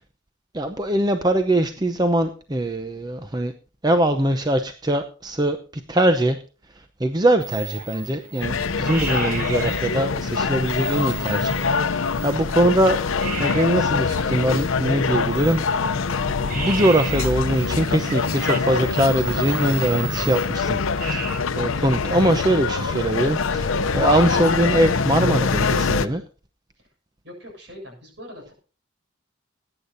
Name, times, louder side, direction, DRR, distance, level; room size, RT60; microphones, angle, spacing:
voice 1, 0.5-3.5 3.8-5.6 5.9-6.4 7.0-11.5 11.8-13.0 13.4-15.6 16.5-26.2, right 1 dB, 20° right, 7 dB, 0.7 m, -22 dB
sound 1, 7.4-21.4, right 5 dB, 40° right, 1.5 m, -36 dB
sound 2, 8.4-26.1, left 5 dB, 90° left, 0.7 m, -24 dB
voice 2, 27.2-28.5, left 1 dB, 60° right, 1 dB, 7.2 m, -42 dB
20.5 x 9.9 x 2.7 m, 0.37 s
head